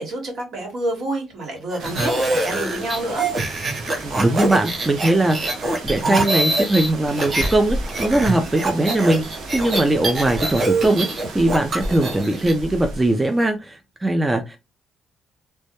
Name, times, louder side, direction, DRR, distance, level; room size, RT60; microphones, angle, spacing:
voice 1, 0.0-3.3, right 1 dB, 65° right, 1.2 m, -28 dB
sound 1, 1.7-7.5 7.8-12.5, right 2 dB, 45° right, 0.8 m, -24 dB
sound 2, 1.8-13.5, right 1 dB, 80° right, 0.6 m, -34 dB
voice 2, 4.0-9.2 9.5-11.1 11.3-14.6, right 1 dB, 15° right, 0.3 m, -20 dB
2.1 x 2.0 x 2.8 m
cardioid pair, 90°, 0 cm